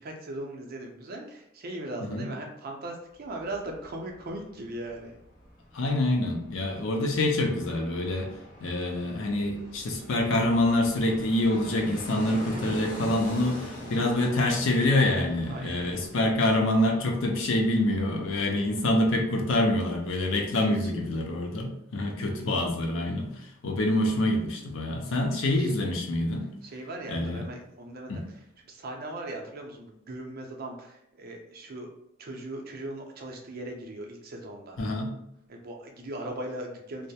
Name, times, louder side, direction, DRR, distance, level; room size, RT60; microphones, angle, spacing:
voice 1, 0.0-5.2 13.9-14.2 15.5-16.1 20.6-21.1 25.0-25.7 26.6-31.9 32.2-34.8 35.5-37.1, right 1 dB, 50° right, 1 dB, 0.5 m, -39 dB
Fixed-wing aircraft airplane, 3.1-20.1 20.4-20.5, left 1 dB, 45° left, 0.8 m, -45 dB
voice 2, 5.7-8.3 8.6-26.5 27.1-27.4 28.1-28.2 34.8-35.1, left 1 dB, 75° left, 2 dB, 0.5 m, -26 dB
2.2 x 2.0 x 2.7 m, 0.79 s
head